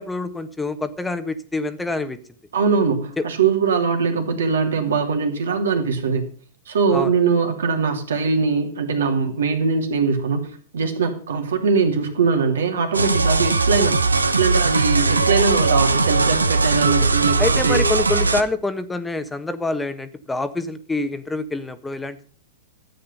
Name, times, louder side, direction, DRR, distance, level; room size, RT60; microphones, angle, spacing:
voice 1, 0.0-2.2 3.2-3.3 6.9-7.2 16.8-16.9 17.4-22.2, left 2 dB, 10° left, 11 dB, 1.2 m, -26 dB
voice 2, 2.5-6.2 6.7-10.5 10.7-14.0 14.3-17.8, right 5 dB, 70° right, 4 dB, 2.8 m, -21 dB
sound 1, 12.9-18.4, right 3 dB, 85° right, 0.9 m, -19 dB
13.0 x 8.6 x 5.5 m, 0.43 s
figure-of-eight pair, 105°, 0 cm